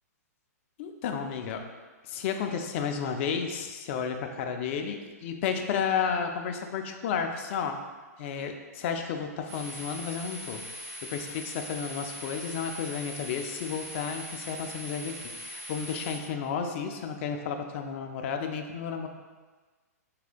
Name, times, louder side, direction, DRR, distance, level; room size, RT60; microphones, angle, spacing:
voice 1, 0.8-1.6 2.1-7.8 8.2-10.6 11.1-15.1 15.4-19.1, left 6 dB, 45° left, 5 dB, 0.4 m, -32 dB
sound 1, 9.5-16.2, equal, 45° right, 1.1 m, -41 dB
3.5 x 2.1 x 4.2 m, 1.4 s
hypercardioid pair, 125°, 9 cm